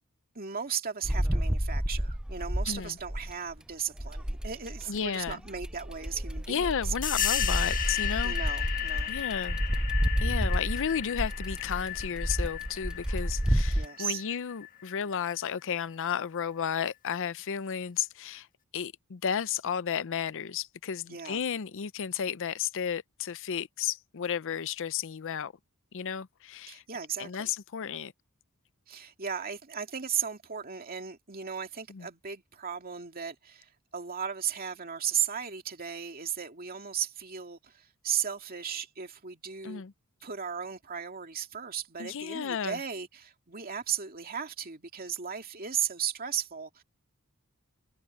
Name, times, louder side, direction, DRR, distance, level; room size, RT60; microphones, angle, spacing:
voice 1, 0.3-6.9 8.2-9.1 13.7-14.2 21.1-21.4 26.7-27.5 28.9-39.8 40.2-46.8, right 8 dB, 40° right, 2.5 m, -36 dB
sound 1, 1.0-3.5 4.0-13.9, equal, 5° right, 0.3 m, -30 dB
voice 2, 2.7-3.0 4.9-5.4 6.5-8.3 9.1-9.6 10.2-18.5 18.7-25.5 25.9-26.8 27.2-28.1 31.9-32.1 39.6-39.9 42.0-42.8, left 7 dB, 60° left, 0.5 m, -33 dB
sound 2, 7.0-15.3, left 11 dB, 40° left, 1.6 m, -34 dB
head